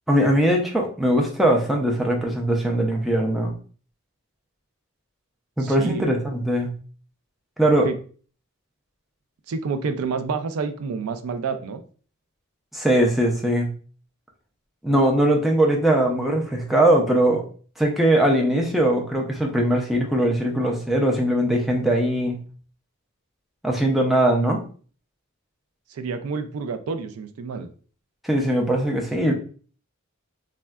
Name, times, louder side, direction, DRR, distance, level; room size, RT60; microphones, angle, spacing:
voice 1, 0.1-3.5 5.6-6.7 7.6-7.9 12.7-13.7 14.8-17.4 17.8-22.4 23.6-24.6 28.2-29.3, right 1 dB, ahead, -1 dB, 0.4 m, -20 dB
voice 2, 5.6-6.2 7.8-8.0 9.5-11.8 25.9-27.7, right 5 dB, 90° right, 8 dB, 0.4 m, -29 dB
3.5 x 2.1 x 2.2 m, 0.42 s
head